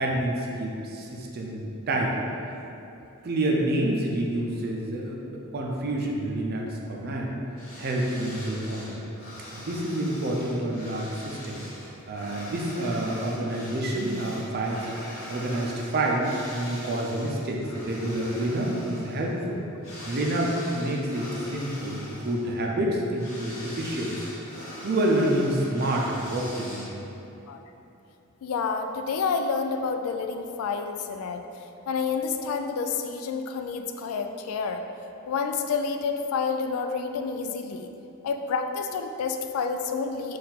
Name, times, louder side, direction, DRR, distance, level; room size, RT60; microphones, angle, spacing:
voice 1, 0.0-2.2 3.2-7.3 7.8-9.0 9.5-11.6 12.1-14.9 15.3-19.6 20.0-24.2 24.8-26.9, right 1 dB, 50° right, -1 dB, 0.5 m, -28 dB
sound 1, 7.6-27.1, left 1 dB, 65° left, 1.0 m, -42 dB
voice 2, 28.4-31.4 31.9-34.8 35.3-37.9 38.2-40.4, left 5 dB, 85° left, 7 dB, 0.3 m, -29 dB
4.3 x 2.5 x 3.9 m, 2.8 s
head